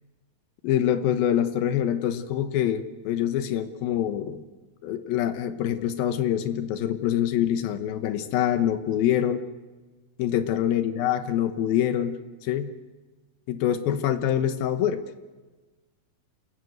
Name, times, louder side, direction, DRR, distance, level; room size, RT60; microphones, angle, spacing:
voice 1, 0.6-4.5 4.8-9.4 10.2-12.7 13.5-15.0, left 10 dB, 85° left, 10 dB, 2.9 m, -25 dB
28.0 x 16.0 x 8.0 m, 1.3 s
omnidirectional pair, 4.1 m